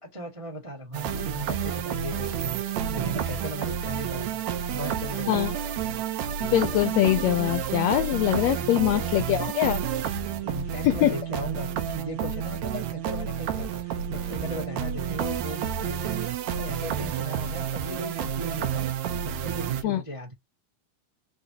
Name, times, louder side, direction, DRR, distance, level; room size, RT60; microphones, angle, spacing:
voice 1, 0.0-5.6 8.6-9.1 9.6-9.8 10.3-20.3, right 1 dB, 30° right, 0.6 m, -37 dB
sound 1, 0.9-19.8, right 8 dB, 70° right, 1.8 m, -30 dB
voice 2, 6.5-9.8 10.8-11.1 19.8-20.0, left 13 dB, 85° left, 1.5 m, -23 dB
6.6 x 2.9 x 2.8 m
omnidirectional pair, 3.7 m